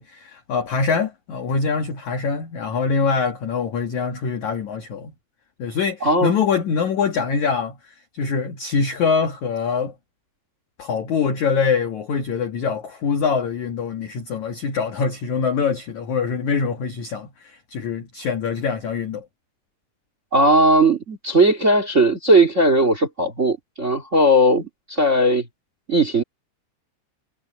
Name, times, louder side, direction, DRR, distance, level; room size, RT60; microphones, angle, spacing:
voice 1, 0.0-5.1 5.6-7.8 8.1-9.9 10.8-19.3, left 5 dB, 60° left, 2.0 m, -24 dB
voice 2, 6.0-6.3 20.3-25.4 25.9-26.2, right 1 dB, 55° right, 0.8 m, -17 dB
omnidirectional pair, 5.7 m